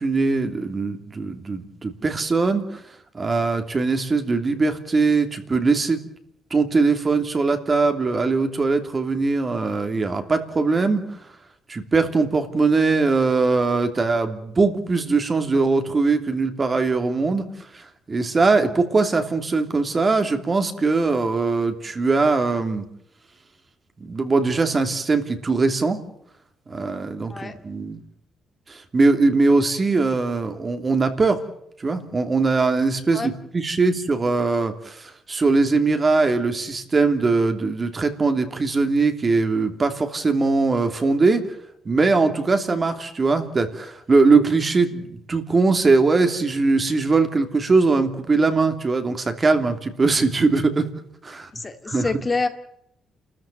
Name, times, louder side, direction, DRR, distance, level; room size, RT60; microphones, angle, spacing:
voice 1, 0.0-2.8 3.1-6.0 6.5-11.2 11.7-17.5 17.7-22.8 24.0-26.0 26.7-28.0 28.7-31.4 31.8-41.5 41.8-50.9 51.2-51.5 51.9-52.1, right 3 dB, 30° right, 7 dB, 2.9 m, -21 dB
voice 2, 51.5-52.5, left 3 dB, 25° left, 7 dB, 2.2 m, -26 dB
29.5 x 14.0 x 9.1 m, 0.75 s
cardioid pair, 100°, 0 cm